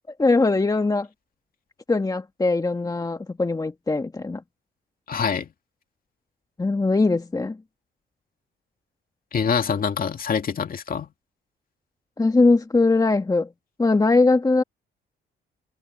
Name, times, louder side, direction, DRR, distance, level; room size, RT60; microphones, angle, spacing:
voice 1, 0.2-1.1 1.9-4.4 6.6-7.6 12.2-13.5 13.8-14.6, left 3 dB, 20° left, 1.7 m, -21 dB
voice 2, 5.1-5.5 9.3-11.1, left 6 dB, 45° left, 2.4 m, -25 dB
cardioid pair, 90°, 20 cm